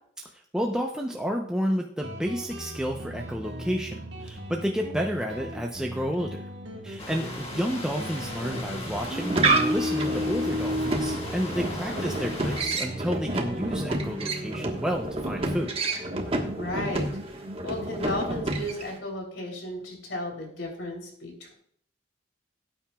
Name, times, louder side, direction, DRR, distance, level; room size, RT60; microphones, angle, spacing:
voice 1, 0.5-6.4 6.8-15.8, equal, 5° right, 0 dB, 0.7 m, -30 dB
Guitar, 2.0-19.2, equal, 70° right, 1.6 m, -39 dB
sound 1, 7.0-12.6, left 2 dB, 35° left, 1.8 m, -38 dB
sound 2, 8.9-19.0, right 2 dB, 30° right, 1.3 m, -29 dB
voice 2, 11.9-12.2 16.5-17.1 17.6-21.5, left 1 dB, 75° left, 2 dB, 3.3 m, -34 dB
17.5 x 8.8 x 2.3 m, 0.63 s
head